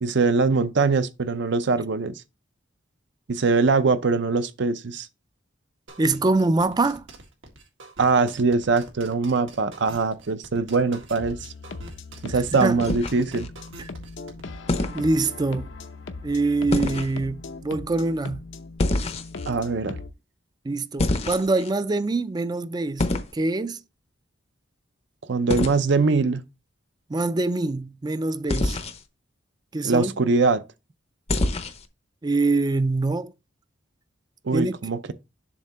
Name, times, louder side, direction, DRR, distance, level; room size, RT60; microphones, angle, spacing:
voice 1, 0.0-2.2 3.3-5.1 8.0-11.5 12.2-13.5 19.5-20.0 25.3-26.4 29.8-30.6 34.4-35.1, right 4 dB, 65° right, 0.6 m, -22 dB
sound 1, 5.9-14.4, right 2 dB, 85° right, 1.8 m, -44 dB
voice 2, 6.0-7.0 12.3-12.8 14.9-15.7 16.2-18.4 19.5-19.6 20.6-23.1 23.3-23.8 27.1-28.8 29.7-30.1 32.2-33.3 34.5-34.8, right 2 dB, 20° right, 0.4 m, -24 dB
sound 2, 11.2-20.1, left 3 dB, 75° left, 0.7 m, -39 dB
sound 3, 12.8-13.5 14.7-15.0 16.7-17.1 18.8-19.5 21.0-21.7 23.0-23.3 25.5-25.8 28.5-29.0 31.3-31.9, left 2 dB, 35° left, 0.6 m, -25 dB
7.3 x 2.8 x 5.5 m
head